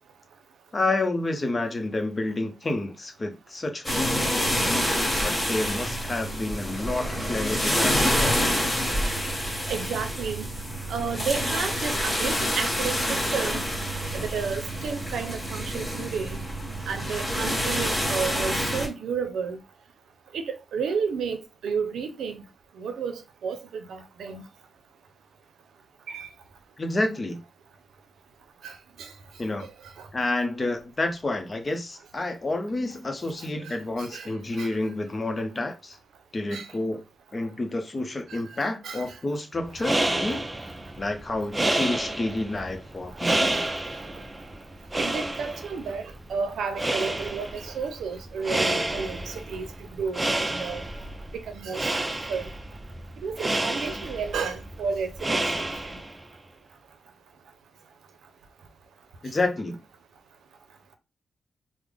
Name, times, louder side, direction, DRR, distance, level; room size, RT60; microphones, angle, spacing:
voice 1, 0.7-4.7 5.2-8.4 26.8-27.4 29.4-29.7 30.1-36.0 36.3-37.0 37.3-40.5 41.0-43.6 59.2-59.8, left 2 dB, 35° left, 0.7 m, -29 dB
sound 1, 3.8-18.9, equal, 20° left, 1.5 m, -27 dB
voice 2, 9.7-10.4 10.9-13.6 14.1-16.4 16.9-19.6 20.3-20.4 20.7-21.4 21.6-22.4 22.8-23.1 23.4-24.4 26.1-26.3 28.6-28.7 29.0-29.1 34.1-34.3 34.6-34.7 36.5-36.6 38.3-38.4 38.8-39.0 40.3-40.4 45.0-46.0 46.3-49.2 49.5-49.7 50.0-50.8 51.5-52.5 53.2-55.4, right 5 dB, 90° right, 0.5 m, -31 dB
sound 2, 39.6-56.2, right 1 dB, 20° right, 0.4 m, -30 dB
3.4 x 2.0 x 3.5 m
cardioid pair, 85°, 0 cm